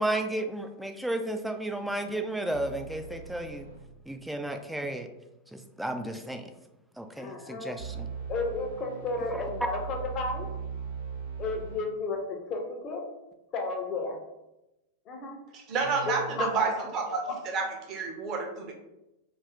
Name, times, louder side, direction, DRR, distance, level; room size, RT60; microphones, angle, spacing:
voice 1, 0.0-3.7 4.1-5.1 5.8-6.4 7.0-8.1, right 1 dB, 5° right, 6 dB, 0.3 m, -33 dB
sound 1, 2.5-3.9 7.8-11.9 15.8-16.4, right 6 dB, 80° right, 0.9 m, -39 dB
voice 2, 7.2-7.8 8.3-10.5 11.4-13.1 13.5-14.2 15.1-15.4 16.1-17.4, left 3 dB, 30° left, 2 dB, 0.6 m, -33 dB
voice 3, 15.5-17.2 17.5-18.7, right 4 dB, 35° right, 2 dB, 0.6 m, -30 dB
2.7 x 2.5 x 3.3 m, 0.94 s
figure-of-eight pair, 90°, 0 cm